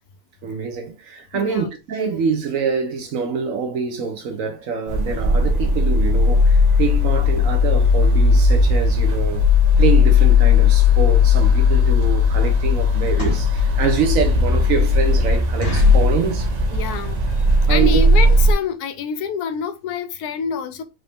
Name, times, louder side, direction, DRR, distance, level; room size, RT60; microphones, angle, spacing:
voice 1, 0.4-9.5 9.8-16.5 17.7-18.0, right 6 dB, 65° right, 1.2 m, -25 dB
voice 2, 1.3-1.7 16.7-20.8, left 7 dB, 80° left, 1.1 m, -27 dB
sound 1, 4.9-18.5, left 4 dB, 45° right, 0.5 m, -16 dB
sound 2, 13.2-13.6 14.1-14.2 14.6-14.7 15.0-15.1 15.6-16.1 16.7-17.0 17.3-17.4 17.6-17.8 18.4-18.5 18.7-18.9 19.2-19.3 19.5-19.6, left 1 dB, 65° left, 1.5 m, -29 dB
4.0 x 2.7 x 3.4 m
omnidirectional pair, 1.6 m